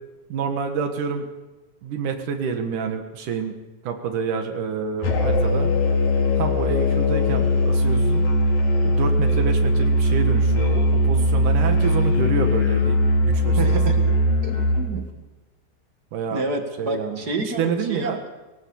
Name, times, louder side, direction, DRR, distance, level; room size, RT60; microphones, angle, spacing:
voice 1, 0.3-1.3 1.8-3.6 3.8-5.7 6.4-8.2 8.8-14.2 16.1-16.4 16.8-17.2 17.6-18.2, right 6 dB, 80° right, 5 dB, 3.1 m, -28 dB
Musical instrument, 5.0-14.9, left 1 dB, 70° left, 4.4 m, -20 dB
voice 2, 13.6-14.0 14.4-15.0 16.3-17.6 17.9-18.1, right 3 dB, 35° right, 4 dB, 2.3 m, -28 dB
20.5 x 18.0 x 7.1 m, 1.1 s
omnidirectional pair, 3.5 m